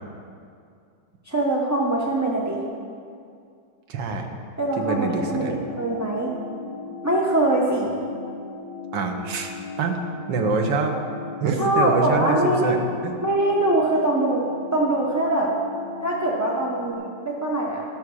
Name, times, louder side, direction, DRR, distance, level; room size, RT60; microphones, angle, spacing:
voice 1, 1.3-2.6 4.6-6.3 7.0-7.9 11.6-12.7 13.2-14.4 14.7-15.5 16.0-17.8, right 1 dB, 20° right, -4 dB, 0.4 m, -23 dB
voice 2, 3.9-4.3 4.8-5.6 8.9-9.5 9.8-10.0 10.3-11.0 11.4-13.1, right 4 dB, 80° right, 4 dB, 1.7 m, -25 dB
sound 1, 5.2-16.9, left 4 dB, 65° left, 1.7 m, -37 dB
12.5 x 6.2 x 6.2 m, 2.3 s
omnidirectional pair, 1.9 m